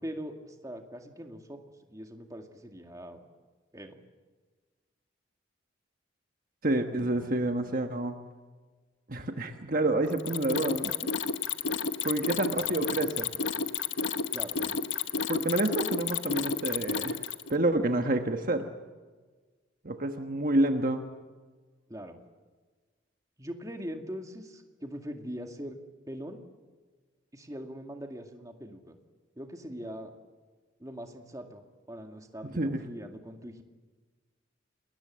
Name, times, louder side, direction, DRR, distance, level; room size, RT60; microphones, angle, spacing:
voice 1, 0.0-1.6 1.9-3.2 3.7-4.0 6.9-7.4 12.6-13.0 14.3-14.8 21.9-22.2 23.4-25.8 26.1-26.4 27.3-29.0 29.4-30.1 30.8-31.6 31.9-33.6, equal, 15° right, 4 dB, 2.2 m, -42 dB
voice 2, 6.6-8.2 9.1-10.9 12.0-13.3 15.3-18.7 19.8-21.0 32.6-32.8, right 2 dB, 45° right, 6 dB, 1.3 m, -28 dB
Mechanisms, 10.1-17.5, left 5 dB, 75° left, 1.1 m, -31 dB
29.0 x 20.5 x 7.6 m, 1.4 s
head